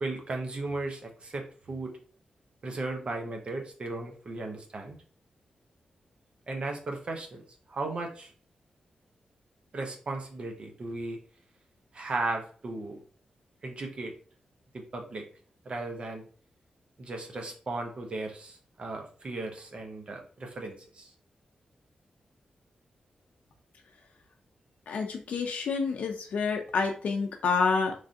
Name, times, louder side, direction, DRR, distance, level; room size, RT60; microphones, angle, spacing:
voice 1, 0.0-2.0 2.6-5.0 6.5-7.4 7.7-8.3 9.7-11.2 11.9-13.0 13.6-14.1 14.7-15.3 15.6-16.3 17.0-21.1, right 2 dB, 45° right, 3 dB, 0.6 m, -36 dB
voice 2, 24.9-27.9, left 5 dB, 85° left, 2 dB, 0.4 m, -28 dB
3.2 x 2.6 x 2.4 m, 0.42 s
wide cardioid pair, 115°, 3 cm